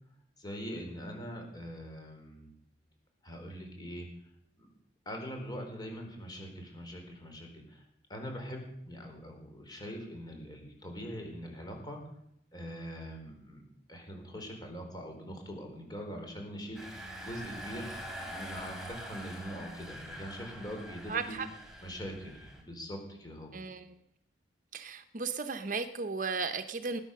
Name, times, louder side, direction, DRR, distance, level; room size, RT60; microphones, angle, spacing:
voice 1, 0.4-2.5 3.2-4.1 4.6-4.7 5.1-7.8 8.1-12.0 12.5-13.6 13.9-17.9 18.2-21.4 21.8-23.5, equal, 20° left, 3 dB, 4.3 m, -42 dB
Engine, 16.7-22.6, equal, 5° right, 3.5 m, -45 dB
voice 2, 21.1-21.5 23.5-23.9 24.7-27.0, right 4 dB, 45° right, 10 dB, 0.8 m, -35 dB
20.0 x 9.9 x 6.6 m, 0.74 s
head